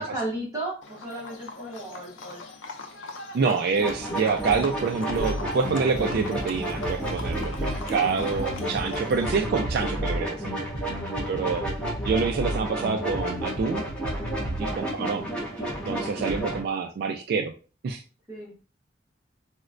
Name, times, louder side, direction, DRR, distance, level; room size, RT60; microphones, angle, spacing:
voice 1, 0.0-2.4 14.5-14.8 18.3-18.5, right 1 dB, 20° right, -7 dB, 1.0 m, -35 dB
Livestock farm animals working animals, 0.8-9.4, left 3 dB, 90° left, 0.5 m, -41 dB
voice 2, 3.3-10.4 11.3-11.7 12.0-13.8 14.6-15.3 15.9-17.5 17.8-18.0, right 5 dB, 55° right, 4 dB, 0.3 m, -27 dB
sound 1, 3.8-16.6, right 1 dB, 5° left, 1.0 m, -32 dB
Bass guitar, 5.2-14.8, equal, 45° left, 0.8 m, -34 dB
4.0 x 2.1 x 2.4 m, 0.36 s
head